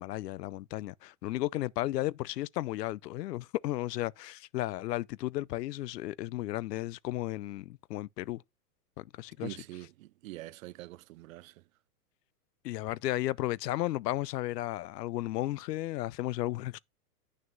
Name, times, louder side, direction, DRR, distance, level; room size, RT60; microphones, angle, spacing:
voice 1, 0.0-8.4 9.0-9.6 12.6-16.8, left 16 dB, 85° left, 0.6 m, -34 dB
voice 2, 9.4-11.7, right 17 dB, 60° right, 0.5 m, -45 dB
9.3 x 6.4 x 2.6 m
hypercardioid pair, 145°, 47 cm